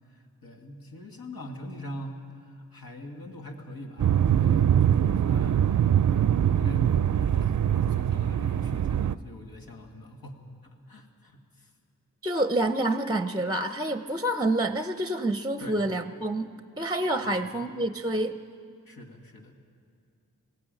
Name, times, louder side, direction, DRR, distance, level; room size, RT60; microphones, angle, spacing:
voice 1, 0.1-10.4 10.6-11.7 15.6-15.8 17.2-17.6 18.9-19.5, left 1 dB, 85° left, 2 dB, 2.3 m, -43 dB
sound 1, 4.0-9.1, right 9 dB, 55° right, 0.5 m, -23 dB
voice 2, 12.2-16.5 16.8-18.3, right 1 dB, 10° right, 9 dB, 0.6 m, -27 dB
20.5 x 16.5 x 9.0 m, 2.2 s
wide cardioid pair, 95°, 35 cm